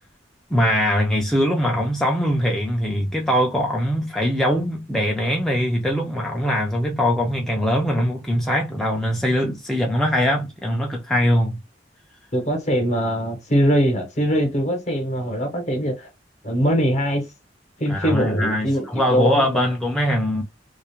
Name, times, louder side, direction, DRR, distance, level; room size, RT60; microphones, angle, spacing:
voice 1, 0.5-11.6 17.9-20.4, equal, 5° left, 0.3 m, -22 dB
voice 2, 12.3-16.1 16.4-17.2 17.8-19.7, equal, 40° left, 0.8 m, -22 dB
2.3 x 2.0 x 2.9 m
head